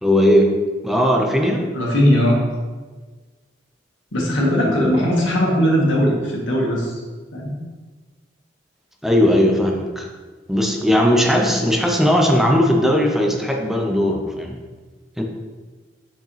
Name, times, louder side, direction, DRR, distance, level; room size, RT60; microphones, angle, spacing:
voice 1, 0.0-0.5 0.8-1.7 4.6-4.9 9.0-10.1 10.5-14.6 15.2-15.3, equal, ahead, 1 dB, 0.7 m, -18 dB
voice 2, 1.7-2.4 4.1-7.0 7.3-7.6, equal, 85° left, -3 dB, 1.9 m, -18 dB
6.4 x 6.3 x 3.3 m, 1.4 s
head